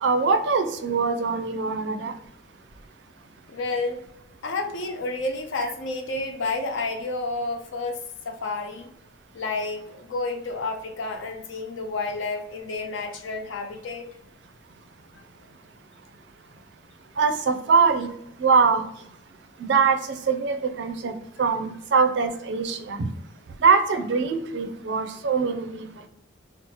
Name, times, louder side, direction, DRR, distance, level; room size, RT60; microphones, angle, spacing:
voice 1, 0.0-2.1 17.2-18.1 18.4-18.8 19.6-20.0 20.3-21.1 21.4-23.1 23.6-25.9, right 5 dB, 60° right, 7 dB, 0.4 m, -22 dB
voice 2, 3.5-4.0 4.4-8.0 8.3-8.9 9.3-14.1, left 3 dB, 70° left, 4 dB, 0.5 m, -30 dB
2.9 x 2.0 x 3.0 m, 0.77 s
head